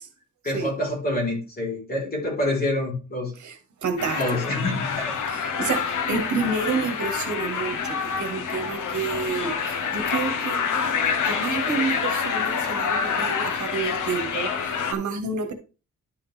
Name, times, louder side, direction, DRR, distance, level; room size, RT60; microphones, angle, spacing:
voice 1, 0.4-3.3 4.1-5.1, left 1 dB, 30° left, 4.2 m, -27 dB
voice 2, 3.8-4.2 4.5-4.6 5.3-10.6 11.3-15.5, right 4 dB, 65° right, 1.7 m, -29 dB
sound 1, 4.0-14.9, left 6 dB, 70° left, 1.4 m, -27 dB
11.5 x 5.7 x 3.4 m
wide cardioid pair, 180°, 32 cm